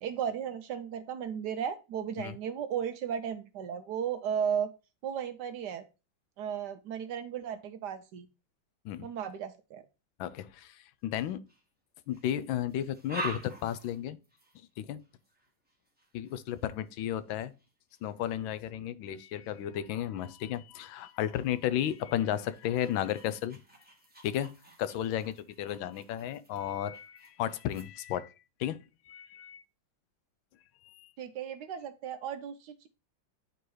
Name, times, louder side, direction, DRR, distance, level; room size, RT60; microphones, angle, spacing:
voice 1, 0.0-4.7 5.0-5.8 6.4-8.3 9.0-9.8 31.2-32.9, right 8 dB, 75° right, 1.0 m, -35 dB
voice 2, 10.2-10.7 11.0-11.4 12.1-14.2 14.8-15.0 16.1-17.5 18.0-23.6 24.2-24.5 24.8-28.3 28.6-29.6 31.0-31.1, left 11 dB, 85° left, 1.4 m, -33 dB
sound 1, 11.1-11.7 12.1-18.7 19.4-19.6 20.2-27.8, right 2 dB, 5° right, 0.9 m, -47 dB
9.2 x 3.9 x 3.1 m
omnidirectional pair, 2.1 m